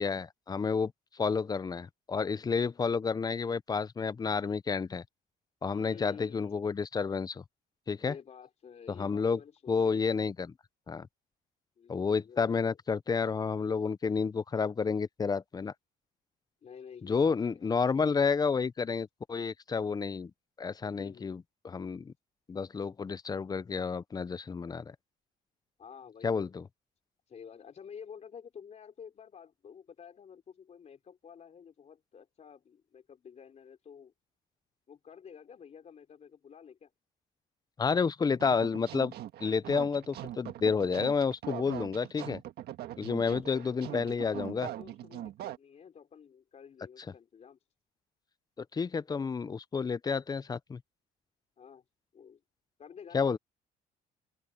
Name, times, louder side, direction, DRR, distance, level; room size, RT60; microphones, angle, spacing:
voice 1, 0.0-5.0 5.6-7.4 7.9-8.1 8.9-9.4 9.7-10.5 10.9-11.1 11.9-15.7 17.0-20.3 20.6-22.1 22.5-24.9 26.2-26.6 37.8-39.1 39.4-42.4 43.0-44.7 48.7-50.8 53.1-53.4, left 5 dB, 25° left, 0.6 m, -30 dB
voice 2, 5.7-6.6 8.0-10.3 11.8-12.8 16.6-18.1 20.9-21.4 25.8-26.5 27.3-34.1 34.9-36.9 43.1-47.6 51.6-51.8 52.1-52.4 52.8-53.4, left 7 dB, 40° left, 4.1 m, -51 dB
sound 1, 38.3-45.6, right 13 dB, 75° right, 1.6 m, -42 dB
open air
cardioid pair, 110°, 17 cm